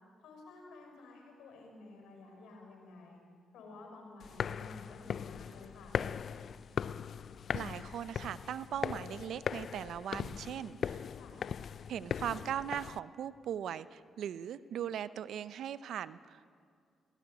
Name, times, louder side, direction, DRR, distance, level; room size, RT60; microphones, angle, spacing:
voice 1, 0.2-3.2 3.5-5.9 11.2-11.4, left 2 dB, 80° left, 2 dB, 5.9 m, -52 dB
sound 1, 4.2-13.0, left 7 dB, 60° left, 0.5 m, -39 dB
voice 2, 7.5-11.1 11.9-16.4, right 9 dB, 75° right, 15 dB, 0.7 m, -39 dB
22.0 x 18.5 x 9.4 m, 2.2 s
supercardioid pair, 55°, 0 cm